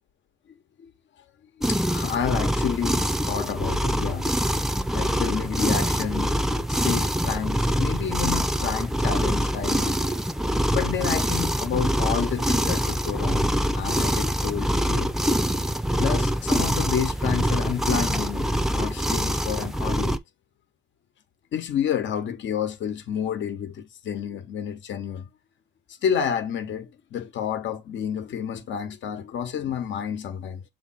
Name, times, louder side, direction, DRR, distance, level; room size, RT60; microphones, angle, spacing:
voice 1, 1.6-4.3 4.9-6.4 6.7-10.0 10.7-13.5 13.7-15.1 16.0-20.2 21.5-25.3 26.0-30.6, left 8 dB, 70° left, 1.2 m, -30 dB
sound 1, 1.6-20.2, equal, ahead, 0.6 m, -24 dB
7.5 x 3.1 x 4.2 m
cardioid pair, 90°, 20 cm